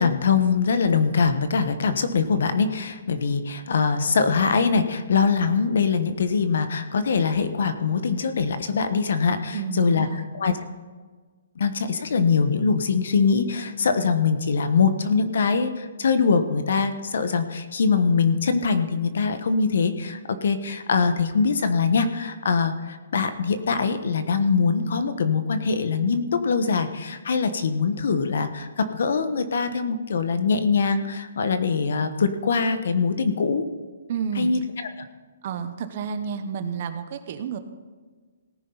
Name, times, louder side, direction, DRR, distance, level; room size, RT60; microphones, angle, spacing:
voice 1, 0.0-10.1 10.3-10.5 11.6-33.6 34.4-34.6, left 5 dB, 60° left, 10 dB, 1.2 m, -23 dB
voice 2, 9.5-10.3 34.1-34.5 35.4-37.6, right 6 dB, 35° right, 9 dB, 0.9 m, -30 dB
18.0 x 10.0 x 4.0 m, 1.4 s
hypercardioid pair, 175°, 0 cm